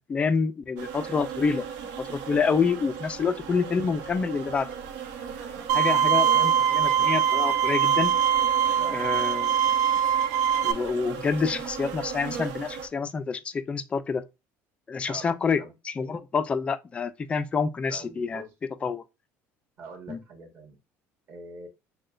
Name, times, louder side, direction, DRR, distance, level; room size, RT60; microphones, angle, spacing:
voice 1, 0.1-1.7 2.0-4.7 5.7-8.1 8.9-9.6 10.6-14.2 14.9-18.4 18.8-19.0 20.1-20.2, left 5 dB, 20° left, 0.3 m, -27 dB
sound 1, 0.8-12.9, right 7 dB, 85° right, 0.9 m, -37 dB
Bowed string instrument, 5.7-10.7, right 9 dB, 70° right, 0.5 m, -22 dB
voice 2, 15.0-15.7 17.9-18.5 19.8-20.8 21.3-21.7, right 3 dB, 40° right, 1.4 m, -44 dB
6.4 x 2.2 x 2.4 m
cardioid pair, 155°, 6 cm